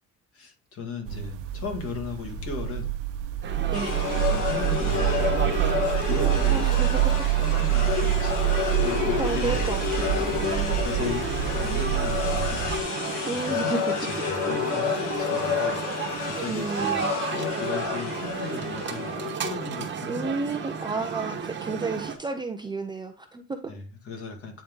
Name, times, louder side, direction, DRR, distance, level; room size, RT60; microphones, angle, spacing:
voice 1, 0.3-2.9 4.1-6.7 7.4-8.5 8.8-9.6 10.8-12.7 13.5-13.8 14.1-17.0 17.3-20.2 23.7-24.6, left 4 dB, 50° left, 3 dB, 2.0 m, -36 dB
sound 1, 1.1-12.8, right 12 dB, 90° right, 0.7 m, -26 dB
sound 2, 3.4-22.2, right 6 dB, 40° right, 1.1 m, -34 dB
sound 3, 3.7-19.4, left 6 dB, 85° left, 1.9 m, -30 dB
voice 2, 6.1-7.2 8.9-10.8 13.3-13.8 16.5-17.1 20.1-23.7, right 3 dB, 15° right, 6 dB, 0.5 m, -32 dB
8.5 x 3.7 x 3.7 m, 0.32 s
cardioid pair, 150°, 30 cm